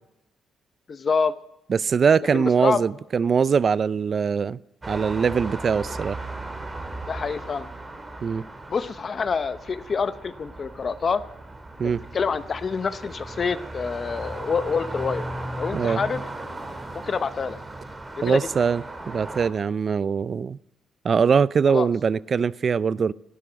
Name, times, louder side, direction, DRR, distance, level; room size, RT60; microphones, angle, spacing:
voice 1, 0.9-1.3 2.3-2.8 7.1-7.7 8.7-11.2 11.8-15.2 15.6-16.2 16.9-17.6 18.2-18.4 21.7-21.9, left 5 dB, 45° left, 0.7 m, -27 dB
voice 2, 1.7-4.6 4.9-6.2 8.2-8.4 11.8-12.0 15.7-16.0 18.2-20.6 21.0-23.1, right 6 dB, 45° right, 0.4 m, -22 dB
sound 1, 4.8-19.5, right 2 dB, 20° right, 2.7 m, -36 dB
18.0 x 12.5 x 5.1 m
cardioid pair, 90°, 0 cm